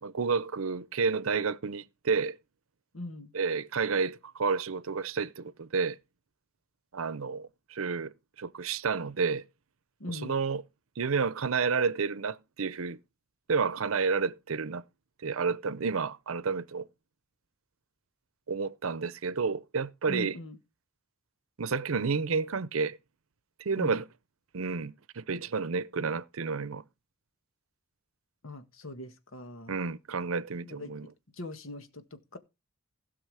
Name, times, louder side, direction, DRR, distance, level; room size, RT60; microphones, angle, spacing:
voice 1, 0.0-2.4 3.3-6.0 6.9-9.4 10.1-10.6 11.0-13.0 13.5-14.8 15.2-16.9 18.5-20.4 21.6-23.0 23.6-24.0 24.5-26.8 29.7-31.1, right 5 dB, 80° right, 0.7 m, -30 dB
voice 2, 2.9-3.3 10.0-10.4 20.1-20.6 23.8-24.0 28.4-29.7 30.6-30.9 31.3-32.4, left 1 dB, 75° left, 1.6 m, -41 dB
16.5 x 6.1 x 4.8 m
head